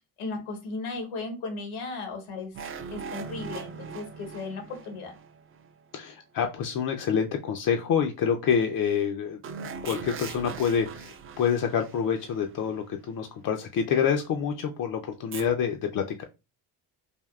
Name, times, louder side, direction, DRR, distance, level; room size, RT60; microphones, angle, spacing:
voice 1, 0.2-2.5 2.9-5.1, left 3 dB, 85° left, 4 dB, 1.1 m, -36 dB
sound 1, 2.5-6.0 9.4-12.7 15.3-15.5, right 5 dB, 30° right, 0.4 m, -40 dB
voice 2, 5.9-9.4 9.8-16.2, left 7 dB, 45° left, 4 dB, 0.4 m, -27 dB
3.4 x 2.2 x 2.3 m, 0.28 s
supercardioid pair, 75°, 48 cm